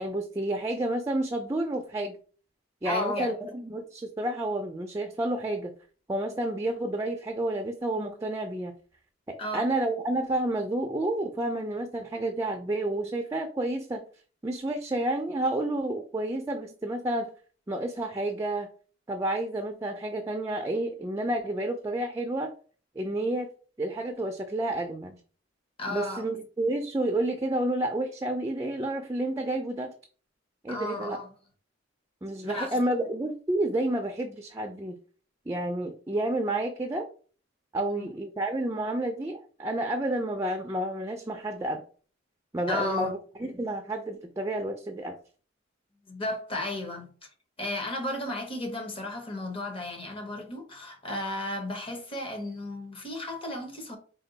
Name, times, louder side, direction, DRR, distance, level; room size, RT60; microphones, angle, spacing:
voice 1, 0.0-2.2 2.8-5.7 6.1-8.7 9.3-14.0 14.4-17.3 17.7-18.7 19.1-22.5 23.0-23.5 23.8-25.2 25.9-29.9 30.6-31.2 32.2-35.0 35.5-37.1 37.7-41.8 42.5-45.2, right 1 dB, 15° right, 0.4 m, -30 dB
voice 2, 2.8-3.5 9.4-9.6 25.8-26.3 30.7-31.3 32.4-32.8 37.9-38.1 42.7-43.1 46.1-47.3 47.6-54.0, left 1 dB, 30° left, 0.9 m, -34 dB
4.3 x 2.3 x 3.8 m
head